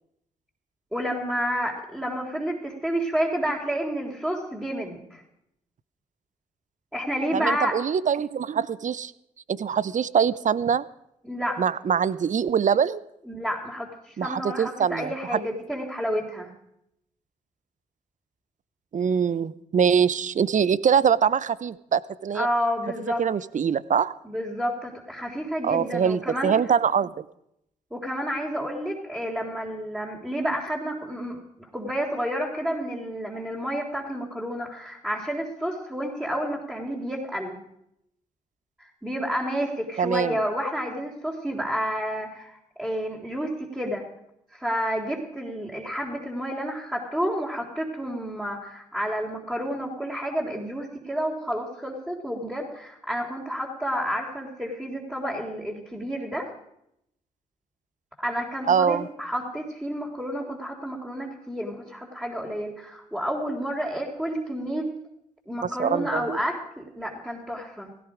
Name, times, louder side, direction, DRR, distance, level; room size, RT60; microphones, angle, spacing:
voice 1, 0.9-5.2 6.9-7.8 11.2-11.6 13.3-16.5 22.3-23.2 24.2-26.5 27.9-31.4 31.7-37.6 38.8-44.0 44.5-56.5 58.2-64.9 65.5-67.9, equal, 5° right, -4 dB, 3.8 m, -30 dB
voice 2, 7.3-9.1 9.5-10.8 11.6-13.0 14.2-15.4 18.9-22.5 23.2-24.1 25.6-27.2 40.0-40.4 58.7-59.1 65.6-66.4, right 7 dB, 50° right, 19 dB, 0.8 m, -23 dB
16.5 x 16.0 x 5.1 m, 0.78 s
hypercardioid pair, 45°, 17 cm